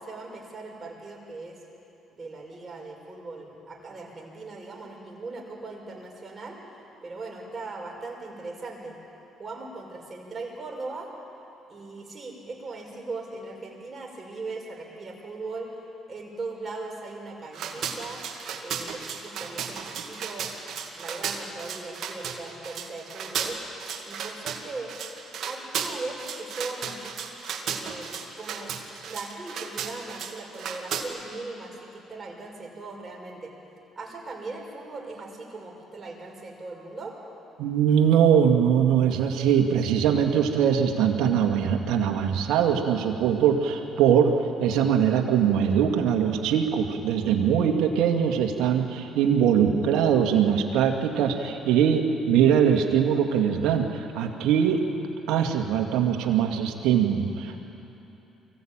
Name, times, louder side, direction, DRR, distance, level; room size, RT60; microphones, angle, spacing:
voice 1, 0.0-1.6 2.1-6.6 7.0-9.0 9.4-11.1 11.7-15.8 16.1-18.2 18.6-20.6 20.9-23.6 24.1-24.9 25.5-27.0 27.6-33.5 34.0-37.2, right 3 dB, 35° right, -1 dB, 5.9 m, -39 dB
sound 1, 17.5-31.0, right 7 dB, 65° right, 2.2 m, -34 dB
voice 2, 37.6-44.3 44.6-54.8 55.3-57.6, right 8 dB, 80° right, 3 dB, 2.2 m, -22 dB
24.0 x 16.0 x 9.0 m, 2.9 s
supercardioid pair, 75°, 0 cm